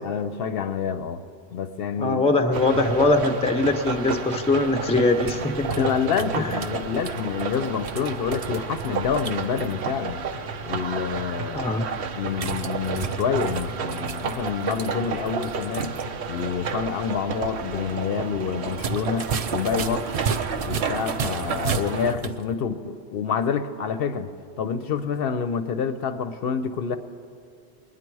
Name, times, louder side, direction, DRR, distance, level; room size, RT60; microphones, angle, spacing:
voice 1, 0.0-1.2 1.5-2.2 5.7-10.2 10.6-11.7 12.1-16.0 16.3-20.2 20.6-27.0, left 6 dB, 65° left, 9 dB, 0.8 m, -27 dB
voice 2, 2.0-5.9 6.4-6.6 11.5-11.9, left 2 dB, 5° left, 5 dB, 0.5 m, -22 dB
sound 1, 2.5-22.1, right 5 dB, 80° right, 1.0 m, -31 dB
sound 2, 5.0-9.7 12.3-16.1 16.4-16.5 18.7-22.4, right 6 dB, 50° right, 0.4 m, -34 dB
20.5 x 9.9 x 4.7 m, 2.5 s
omnidirectional pair, 1.1 m